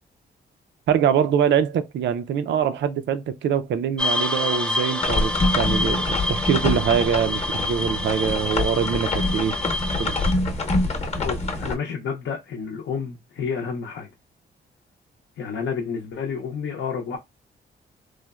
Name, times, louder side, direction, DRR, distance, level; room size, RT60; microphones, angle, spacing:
voice 1, 0.9-9.6 10.0-10.1, right 8 dB, 75° right, 0.4 m, -23 dB
sound 1, 4.0-10.3, left 1 dB, 5° left, 0.4 m, -27 dB
sound 2, 5.0-11.7, left 2 dB, 35° left, 0.8 m, -26 dB
voice 2, 11.2-14.1 15.4-17.2, left 6 dB, 80° left, 0.6 m, -30 dB
3.1 x 2.0 x 2.3 m
cardioid pair, 90°, 19 cm